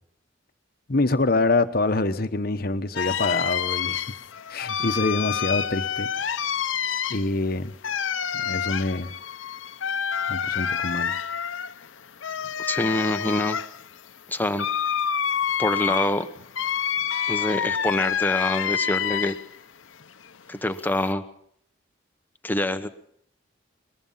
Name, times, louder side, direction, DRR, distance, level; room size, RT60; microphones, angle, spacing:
voice 1, 0.9-4.0 4.5-6.1 7.1-7.7 8.3-9.1 10.3-11.1, left 2 dB, 50° left, 10 dB, 1.1 m, -25 dB
sound 1, 3.0-19.6 20.0-21.1, left 8 dB, 85° left, 0.8 m, -28 dB
voice 2, 12.6-13.6 14.3-14.7 15.6-16.3 17.3-19.4 20.5-21.2 22.4-22.9, left 1 dB, 10° left, 9 dB, 1.0 m, -25 dB
22.5 x 21.0 x 5.6 m, 0.66 s
head